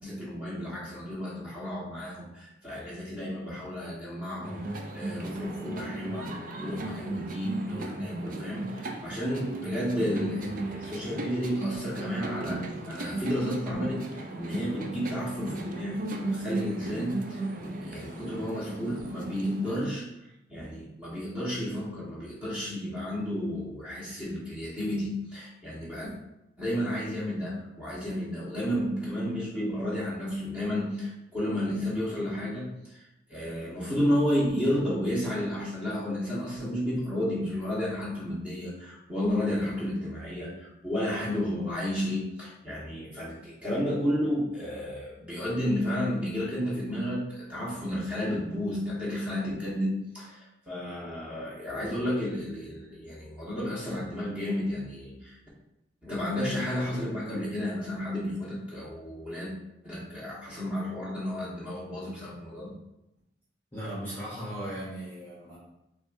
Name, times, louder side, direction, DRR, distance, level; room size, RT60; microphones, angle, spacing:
voice 1, 0.0-6.3 6.6-12.6 12.9-20.1 20.5-26.1 26.6-33.0 33.3-55.3 56.0-59.5 59.8-62.7, equal, 10° right, -8 dB, 1.3 m, -32 dB
sound 1, 4.4-19.8, right 2 dB, 50° right, 0.5 m, -36 dB
voice 2, 63.7-65.6, equal, 15° left, -9 dB, 1.0 m, -37 dB
6.0 x 2.5 x 2.6 m, 0.91 s
head